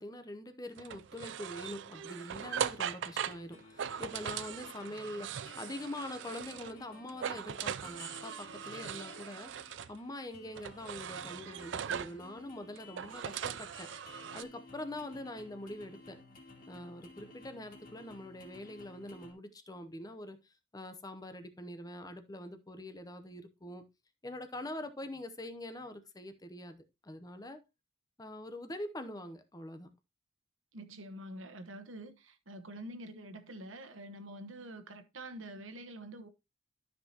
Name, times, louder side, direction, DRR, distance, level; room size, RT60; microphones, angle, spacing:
voice 1, 0.0-13.9 14.3-16.2 16.7-23.8 24.2-27.6 28.2-29.9, left 1 dB, 20° left, 0.7 m, -44 dB
sound 1, 0.8-6.8 7.1-9.9 10.6-12.2 12.8-14.4, right 8 dB, 65° right, 0.4 m, -40 dB
sound 2, 2.8-19.3, left 3 dB, 45° left, 2.5 m, -55 dB
voice 2, 30.7-36.3, right 1 dB, 90° right, 1.2 m, -46 dB
12.5 x 5.8 x 2.9 m
head